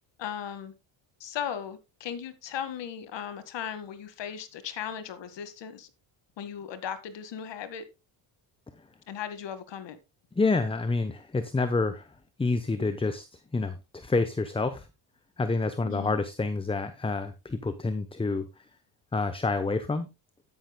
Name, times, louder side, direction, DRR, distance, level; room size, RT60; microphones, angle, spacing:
voice 1, 0.2-0.7 1.2-5.9 6.4-7.9 9.1-10.0 15.8-16.2, left 8 dB, 60° left, 2.0 m, -37 dB
voice 2, 10.4-13.3 13.5-14.9 15.4-18.7 19.1-20.1, left 3 dB, 10° left, 0.9 m, -28 dB
13.0 x 10.5 x 2.3 m
cardioid pair, 110°, 50 cm